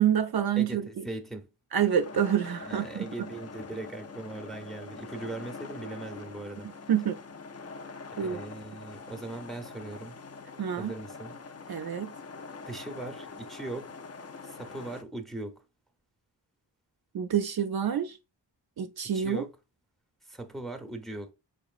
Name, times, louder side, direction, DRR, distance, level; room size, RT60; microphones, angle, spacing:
voice 1, 0.0-0.9 1.7-3.0 6.9-7.2 8.2-8.4 10.6-10.9 11.7-12.1 17.1-18.1 18.8-19.4, right 9 dB, 60° right, 0.5 m, -27 dB
voice 2, 0.6-1.5 2.7-6.7 8.1-10.2 10.8-11.4 12.7-13.9 14.4-15.6 19.1-19.5 20.2-21.3, right 2 dB, ahead, 0.7 m, -39 dB
sound 1, 1.8-15.0, left 4 dB, 35° left, 0.5 m, -44 dB
4.7 x 3.0 x 2.4 m
wide cardioid pair, 70°, 44 cm